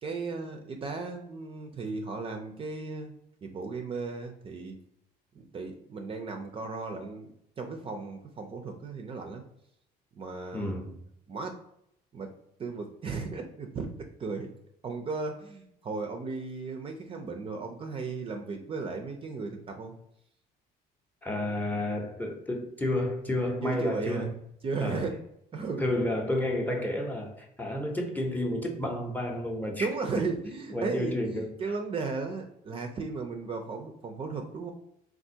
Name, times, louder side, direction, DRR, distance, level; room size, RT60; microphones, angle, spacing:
voice 1, 0.0-3.1 3.4-4.8 5.3-9.4 10.1-10.7 11.3-11.6 12.1-14.5 14.8-19.9 23.6-24.3 24.6-25.2 25.5-25.8 29.8-34.7, right 4 dB, 35° right, 4 dB, 0.4 m, -35 dB
voice 2, 10.5-10.9 21.2-24.3 24.8-25.0 25.8-29.9 30.7-31.5, left 1 dB, 10° left, 1 dB, 0.6 m, -31 dB
3.4 x 2.4 x 2.7 m, 0.76 s
cardioid pair, 110°, 17 cm